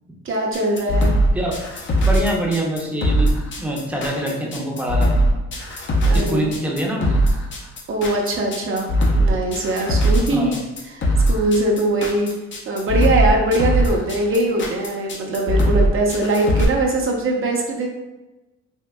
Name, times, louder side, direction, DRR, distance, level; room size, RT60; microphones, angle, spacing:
voice 1, 0.2-1.1 6.0-6.5 7.9-10.5 10.8-12.3 12.7-17.9, right 2 dB, 45° right, -1 dB, 0.7 m, -21 dB
sound 1, 0.5-16.6, right 1 dB, 40° left, 0.6 m, -19 dB
voice 2, 2.0-3.3 3.6-5.3 6.1-7.2 10.3-10.6, right 1 dB, 5° right, -2 dB, 0.7 m, -24 dB
3.6 x 2.5 x 2.2 m, 1.1 s
cardioid pair, 90°, 30 cm